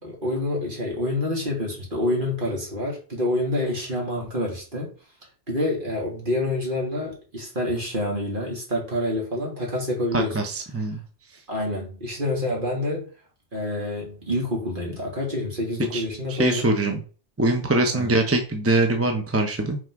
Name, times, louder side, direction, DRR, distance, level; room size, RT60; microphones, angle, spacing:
voice 1, 0.0-4.9 5.5-10.4 11.5-13.1 13.5-16.7 17.9-18.1, left 1 dB, 50° right, -2 dB, 2.8 m, -27 dB
voice 2, 10.1-11.0 11.3-11.4 15.9-16.0 16.3-17.0 17.4-19.8, right 2 dB, 15° right, 3 dB, 0.8 m, -23 dB
6.0 x 4.7 x 4.7 m, 0.38 s
omnidirectional pair, 1.1 m